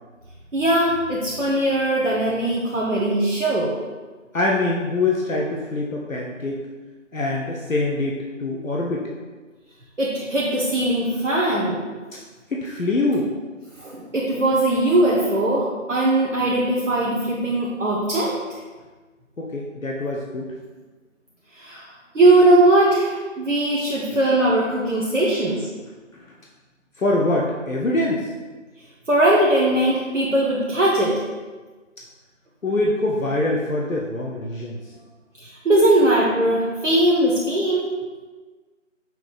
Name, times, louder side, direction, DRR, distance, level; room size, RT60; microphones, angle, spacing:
voice 1, 0.5-3.8 10.0-11.8 13.8-18.4 21.5-21.9 22.1-25.7 29.1-31.2 35.4-37.9, right 1 dB, 65° right, -4 dB, 0.8 m, -20 dB
voice 2, 4.3-6.6 7.1-9.1 12.1-12.2 12.5-13.3 19.4-20.5 27.0-28.3 32.6-34.8, left 2 dB, 85° left, -2 dB, 0.8 m, -24 dB
5.7 x 3.7 x 2.3 m, 1.3 s
figure-of-eight pair, 180°, 39 cm